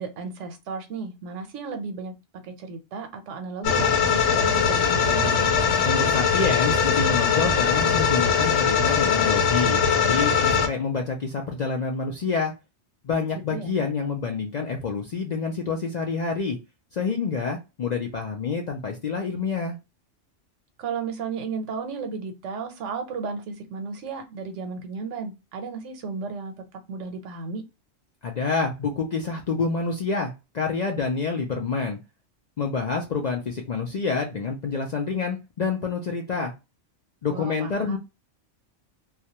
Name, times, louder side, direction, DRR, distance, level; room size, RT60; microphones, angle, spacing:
voice 1, 0.0-2.1 2.4-5.4 13.5-13.9 20.8-26.5 26.9-27.6 37.3-38.0, right 5 dB, 85° right, 1.0 m, -34 dB
sound 1, 3.6-10.7, left 6 dB, 75° left, 1.0 m, -21 dB
voice 2, 5.8-12.5 13.0-16.6 16.9-19.7 28.2-32.0 32.6-36.5 37.2-38.0, left 4 dB, 60° left, 0.4 m, -27 dB
2.3 x 2.2 x 2.7 m
omnidirectional pair, 1.2 m